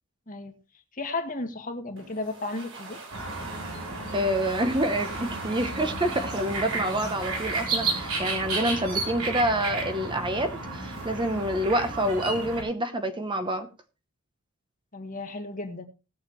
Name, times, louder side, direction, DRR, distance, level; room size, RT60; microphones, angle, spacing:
voice 1, 0.9-3.0 14.9-15.9, left 2 dB, 40° left, 1.6 m, -34 dB
sound 1, 2.0-9.4, right 3 dB, 60° right, 3.3 m, -44 dB
sound 2, 3.1-12.6, right 3 dB, 80° right, 4.0 m, -32 dB
voice 2, 4.1-13.7, right 1 dB, 20° right, 0.9 m, -27 dB
19.0 x 7.3 x 3.1 m
head